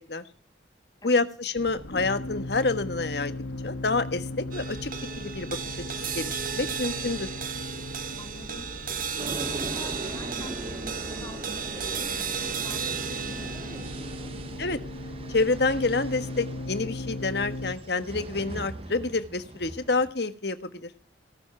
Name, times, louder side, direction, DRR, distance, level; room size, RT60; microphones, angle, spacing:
voice 1, 1.0-3.3 3.6-4.9 5.2-7.3 14.6-14.8 15.3-20.9, left 3 dB, 60° left, 11 dB, 1.4 m, -28 dB
sound 1, 1.6-17.7, left 1 dB, 85° left, 1.5 m, -38 dB
sound 2, 4.5-17.0, right 6 dB, 45° right, 1.4 m, -35 dB
voice 2, 8.2-14.3, left 1 dB, 20° left, 5 dB, 2.3 m, -46 dB
sound 3, 9.2-20.1, right 1 dB, 30° right, 1.0 m, -40 dB
18.0 x 7.3 x 8.9 m, 0.38 s
head